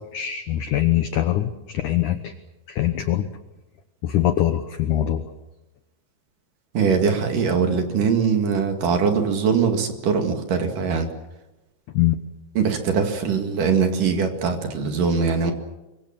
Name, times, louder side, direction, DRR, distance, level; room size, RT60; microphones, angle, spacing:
voice 1, 0.1-2.3 2.7-3.3 4.0-5.3 11.9-12.2, left 12 dB, 75° left, 9 dB, 1.9 m, -22 dB
voice 2, 6.7-11.1 12.6-15.5, right 5 dB, 55° right, 5 dB, 3.4 m, -22 dB
25.0 x 23.5 x 7.3 m, 0.99 s
omnidirectional pair, 5.0 m